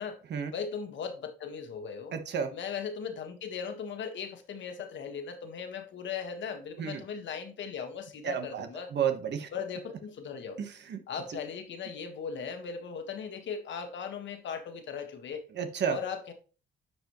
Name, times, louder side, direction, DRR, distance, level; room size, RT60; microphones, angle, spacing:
voice 1, 0.5-2.1 2.5-8.9 9.5-10.6 11.1-15.4 15.9-16.3, left 6 dB, 70° left, 6 dB, 1.6 m, -38 dB
voice 2, 2.1-2.5 6.8-7.0 8.2-9.5 10.6-11.0 15.6-16.0, right 7 dB, 60° right, 7 dB, 1.3 m, -31 dB
10.0 x 4.9 x 3.1 m, 0.36 s
cardioid pair, 90°, 20 cm